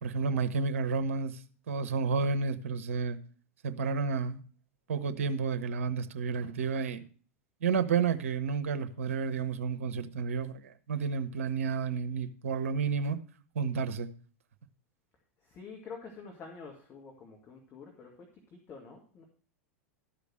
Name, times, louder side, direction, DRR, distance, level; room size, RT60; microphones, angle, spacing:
voice 1, 0.0-1.4 1.7-3.2 3.6-4.4 4.9-7.1 7.6-13.2 13.5-14.1, right 5 dB, 65° right, 0.9 m, -31 dB
voice 2, 15.4-19.2, left 5 dB, 30° left, 2.0 m, -48 dB
12.5 x 5.1 x 6.3 m
figure-of-eight pair, 90°, 8 cm